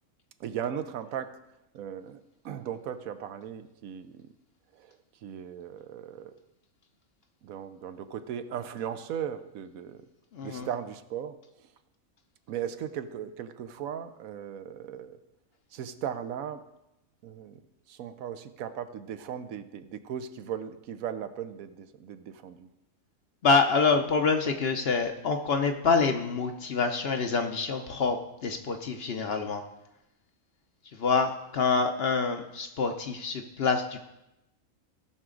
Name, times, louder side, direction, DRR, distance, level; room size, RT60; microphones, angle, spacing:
voice 1, 0.4-1.4 1.7-4.3 4.7-5.0 5.2-6.3 7.4-10.1 10.4-11.7 12.5-15.2 15.7-16.7 17.2-17.6 17.9-22.7, right 9 dB, 80° right, 11 dB, 1.1 m, -37 dB
voice 2, 10.3-10.7 23.4-29.6 30.9-34.1, left 4 dB, 55° left, 6 dB, 0.8 m, -26 dB
16.5 x 6.0 x 3.8 m, 0.91 s
omnidirectional pair, 1.5 m